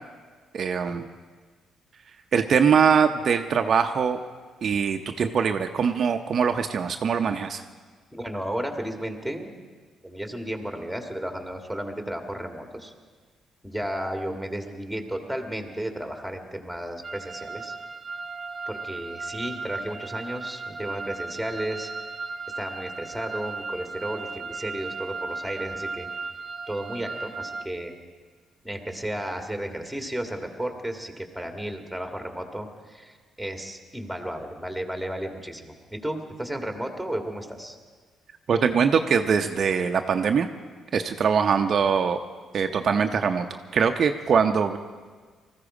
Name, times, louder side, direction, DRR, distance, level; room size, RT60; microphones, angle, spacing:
voice 1, 0.5-1.1 2.3-4.2 4.6-7.6 38.5-40.5 40.9-42.2 42.5-44.8, right 6 dB, 55° right, 6 dB, 0.6 m, -22 dB
voice 2, 8.1-9.5 10.0-12.9 13.6-17.8 18.7-21.9 22.6-26.1 26.7-27.9 28.6-37.8, right 1 dB, ahead, 4 dB, 1.9 m, -33 dB
sound 1, 17.0-27.7, right 4 dB, 30° right, 1.2 m, -36 dB
19.5 x 14.5 x 4.9 m, 1.5 s
cardioid pair, 90°, 0 cm